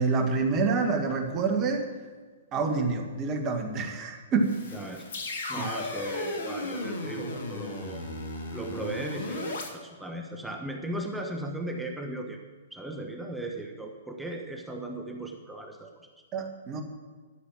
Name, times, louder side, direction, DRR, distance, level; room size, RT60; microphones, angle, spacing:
voice 1, 0.0-1.8 2.5-4.6 5.6-5.7 16.3-16.8, right 4 dB, 30° right, 4 dB, 1.8 m, -27 dB
sound 1, 4.4-9.7, left 2 dB, 65° left, 2.0 m, -35 dB
voice 2, 4.7-5.0 5.5-8.0 8.5-12.4 12.7-16.1, right 2 dB, 5° right, 2 dB, 1.2 m, -37 dB
13.0 x 6.8 x 7.3 m, 1.5 s
hypercardioid pair, 120°, 0 cm